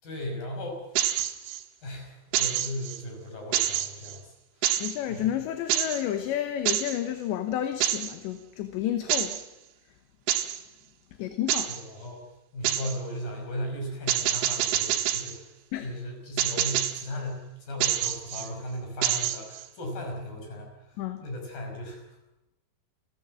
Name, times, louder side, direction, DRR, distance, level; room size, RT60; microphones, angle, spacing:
voice 1, 0.0-0.8 1.8-4.3 5.1-5.2 11.7-12.2 12.5-15.5 15.8-22.0, left 1 dB, 50° left, 2 dB, 7.3 m, -36 dB
sound 1, 1.0-1.6 2.3-3.0 3.5-4.2 4.6-5.0 5.7-6.0 6.7-7.0 7.8-8.2 9.1-9.4 10.3-10.6 11.5-11.8 12.7-13.0 14.1-15.4 16.4-17.1 17.8-18.5 19.0-19.7, right 11 dB, 90° right, 3.8 m, -27 dB
voice 2, 4.8-9.4 11.2-11.7 15.7-15.9 21.0-21.2, left 11 dB, 75° left, 7 dB, 3.4 m, -30 dB
29.0 x 16.0 x 7.7 m, 0.92 s
omnidirectional pair, 5.3 m